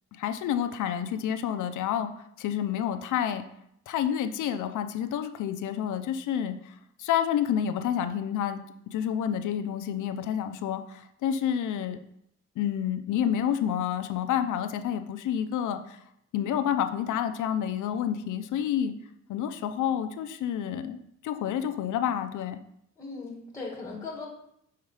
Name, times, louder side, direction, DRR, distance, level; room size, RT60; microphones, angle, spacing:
voice 1, 0.2-2.1 2.4-3.4 3.9-6.7 7.0-8.6 8.9-12.0 12.6-16.0 16.3-18.9 19.3-21.0 21.2-22.6, left 9 dB, 90° left, 9 dB, 0.6 m, -29 dB
voice 2, 23.0-24.3, left 3 dB, 10° left, -3 dB, 1.9 m, -38 dB
5.8 x 4.7 x 4.8 m, 0.74 s
cardioid pair, 105°, 30 cm